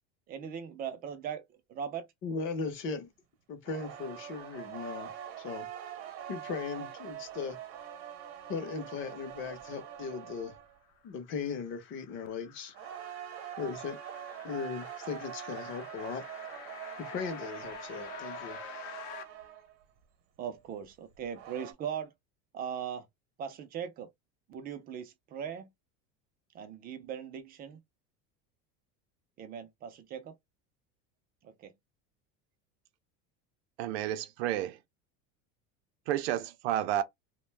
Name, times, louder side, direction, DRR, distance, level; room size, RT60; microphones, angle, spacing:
voice 1, 0.3-1.4 1.7-2.1 20.4-22.1 22.5-23.0 23.4-24.1 24.5-25.7 26.5-27.8 29.4-30.3 31.4-31.7, right 8 dB, 30° right, 0.4 m, -39 dB
voice 2, 2.2-3.1 3.5-5.7 6.0-7.6 8.5-10.5 11.0-12.7 13.6-14.0 14.4-16.2 17.0-18.6, left 5 dB, 40° left, 0.7 m, -38 dB
sound 1, 3.6-10.8 12.7-19.8 21.1-21.7, right 10 dB, 55° right, 0.8 m, -44 dB
sound 2, 10.9-19.2, left 9 dB, 75° left, 0.7 m, -48 dB
voice 3, 33.8-34.8 36.1-37.0, right 12 dB, 90° right, 0.5 m, -31 dB
2.5 x 2.2 x 3.2 m
cardioid pair, 155°, 31 cm